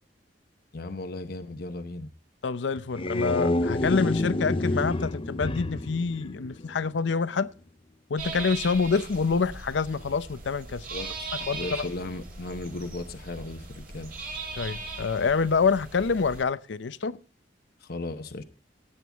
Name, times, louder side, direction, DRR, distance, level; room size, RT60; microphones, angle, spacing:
voice 1, 0.7-2.1 10.9-14.1 17.8-18.4, left 2 dB, 60° left, 0.9 m, -36 dB
voice 2, 2.4-7.5 8.1-10.8 11.4-11.8 14.6-17.2, left 5 dB, 85° left, 0.6 m, -27 dB
sound 1, 2.8-7.0, left 2 dB, 30° left, 0.6 m, -28 dB
sound 2, 8.2-16.4, right 3 dB, 55° right, 5.9 m, -39 dB
16.5 x 8.8 x 3.4 m
head